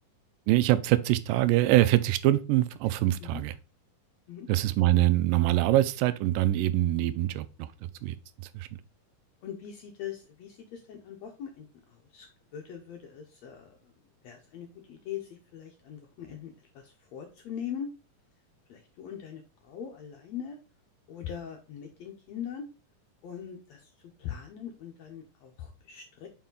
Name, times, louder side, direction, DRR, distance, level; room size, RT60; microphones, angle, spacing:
voice 1, 0.5-3.5 4.5-7.7 8.0-8.2 8.5-8.7, right 15 dB, 85° right, 2.3 m, -24 dB
voice 2, 9.4-12.3 12.5-17.9 18.7-20.6 21.1-22.7 23.2-23.9 24.2-26.3, left 8 dB, 75° left, 1.6 m, -41 dB
5.7 x 4.9 x 3.8 m
omnidirectional pair, 3.9 m